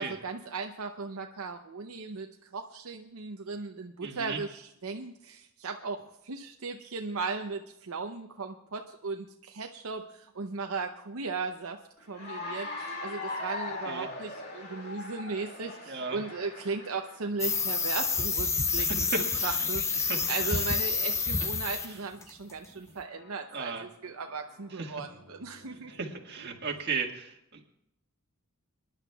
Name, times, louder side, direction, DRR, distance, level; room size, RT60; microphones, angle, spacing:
voice 1, 0.0-2.3 2.5-11.8 12.1-19.0 19.4-25.9, right 4 dB, 80° right, 4 dB, 0.7 m, -37 dB
voice 2, 4.0-4.4 13.8-14.1 15.9-16.2 18.7-19.7 20.0-20.7 21.4-21.5 21.8-22.0 22.7-22.9 23.5-23.8 24.7-25.0 25.9-27.7, right 4 dB, 50° right, 2 dB, 1.7 m, -36 dB
Cheering / Applause, 12.1-17.3, left 2 dB, 50° left, 2.3 m, -39 dB
sound 1, 17.4-21.9 22.2-22.5, left 5 dB, 15° left, 0.4 m, -29 dB
sound 2, 19.3-19.7 21.2-21.5 23.1-23.4 24.0-26.8, equal, 65° left, 5.4 m, -56 dB
25.0 x 11.0 x 2.3 m, 0.78 s
head